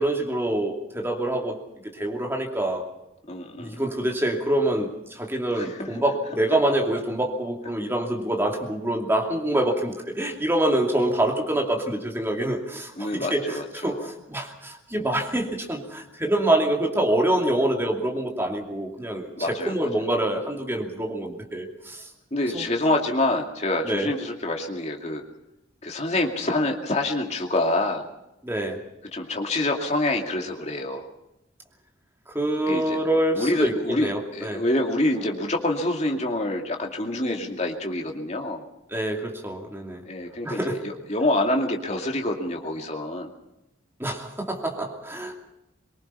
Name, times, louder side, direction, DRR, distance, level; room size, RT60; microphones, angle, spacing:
voice 1, 0.0-1.6 1.8-2.8 3.6-22.1 22.5-22.6 23.8-24.1 28.4-28.8 32.3-34.6 38.9-40.0 40.4-40.8 44.0-45.3, right 1 dB, 10° right, 1 dB, 2.7 m, -26 dB
voice 2, 3.3-3.8 5.5-6.0 13.0-14.1 19.4-19.9 22.3-25.2 25.8-28.1 29.1-31.1 32.7-33.0 33.3-38.6 40.1-43.3, left 1 dB, 35° left, 2 dB, 2.5 m, -26 dB
23.5 x 22.0 x 5.7 m, 0.89 s
head